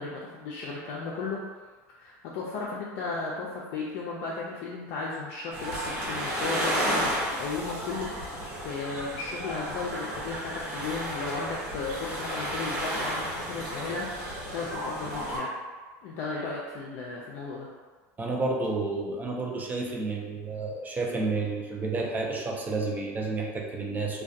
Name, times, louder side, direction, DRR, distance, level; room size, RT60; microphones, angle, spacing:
voice 1, 0.0-1.4 1.9-15.5 16.0-17.7, left 3 dB, 65° left, -4 dB, 0.4 m, -35 dB
sound 1, 5.5-15.4, equal, 80° right, 1.0 m, -32 dB
voice 2, 18.2-24.2, right 3 dB, 20° right, 0 dB, 0.4 m, -30 dB
2.3 x 2.2 x 2.6 m, 1.4 s
supercardioid pair, 115°, 8 cm